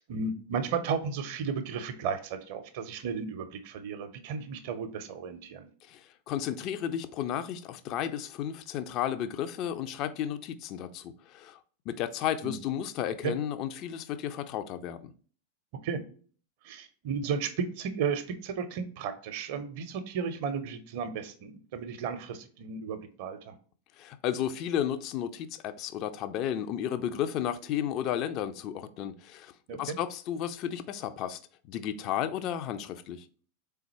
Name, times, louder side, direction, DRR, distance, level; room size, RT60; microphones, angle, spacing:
voice 1, 0.1-5.7 12.4-12.6 13.2-13.3 15.8-16.0 16.6-23.5 29.7-30.0, right 6 dB, 50° right, 0.6 m, -34 dB
voice 2, 5.9-11.6 11.9-15.1 24.0-31.4 31.7-33.3, left 10 dB, 40° left, 0.3 m, -33 dB
3.8 x 3.4 x 2.9 m
figure-of-eight pair, 90°, 0 cm